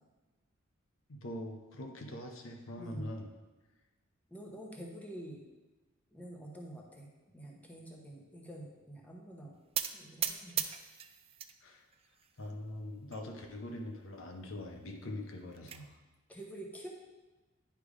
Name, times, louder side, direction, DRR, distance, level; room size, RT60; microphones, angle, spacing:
voice 1, 1.1-3.3 11.6-11.8 12.4-15.9, left 1 dB, 65° left, 3 dB, 0.8 m, -43 dB
voice 2, 4.3-5.4 6.1-7.1 7.3-9.5 9.9-10.6 16.3-16.9, right 1 dB, 5° left, -1 dB, 1.0 m, -47 dB
sound 1, 9.7-11.5 11.9-12.5 13.1-13.2 13.5-13.6 14.0-14.1 15.2-15.8, right 9 dB, 30° right, 0.3 m, -37 dB
9.8 x 3.4 x 4.9 m, 1.1 s
head